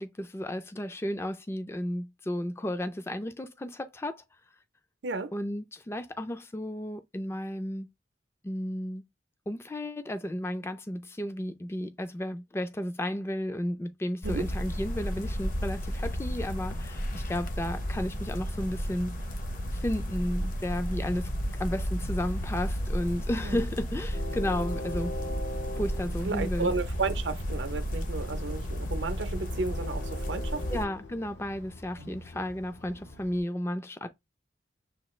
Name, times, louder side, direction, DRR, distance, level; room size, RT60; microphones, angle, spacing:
voice 1, 0.0-4.2 5.3-7.9 8.4-9.0 9.5-19.2 19.7-21.3 21.6-25.2 25.8-26.7 30.7-34.1, left 1 dB, 15° left, 0.3 m, -33 dB
voice 2, 5.0-5.3 14.2-14.5 23.4-23.7 26.2-30.7 32.0-32.1, right 4 dB, 80° right, 0.6 m, -33 dB
sound 1, 14.2-30.9, equal, 45° left, 0.7 m, -33 dB
Train, 22.2-33.4, left 1 dB, 75° left, 0.9 m, -43 dB
6.9 x 2.3 x 3.1 m
head